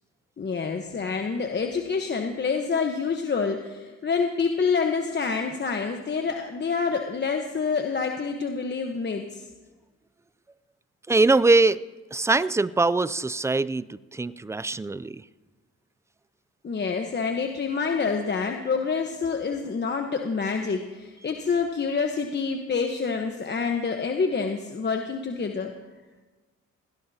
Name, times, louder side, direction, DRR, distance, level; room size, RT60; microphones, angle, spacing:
voice 1, 0.4-9.5 16.6-25.7, left 5 dB, 35° left, 3 dB, 1.2 m, -27 dB
voice 2, 11.1-11.8 12.1-15.2, right 3 dB, 10° right, 17 dB, 0.4 m, -22 dB
20.5 x 17.0 x 2.8 m, 1.2 s
cardioid pair, 90°, 30 cm